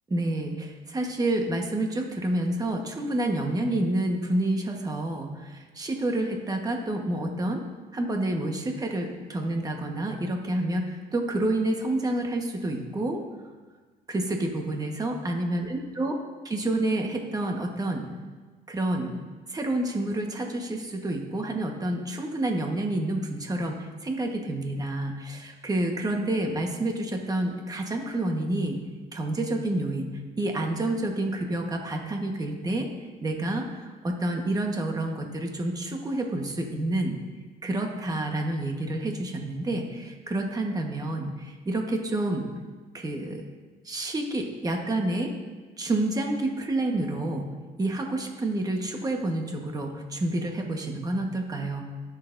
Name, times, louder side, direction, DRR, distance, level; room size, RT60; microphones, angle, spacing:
voice 1, 0.1-7.6 7.9-13.2 14.1-16.2 16.4-18.0 18.7-19.2 19.5-28.8 29.1-30.1 30.4-32.9 33.2-37.2 37.6-42.5 42.9-43.4 43.8-45.3 45.8-47.5 47.8-51.9, right 1 dB, 20° right, 2 dB, 1.3 m, -29 dB
19.5 x 6.7 x 2.7 m, 1.4 s
cardioid pair, 110°, 17 cm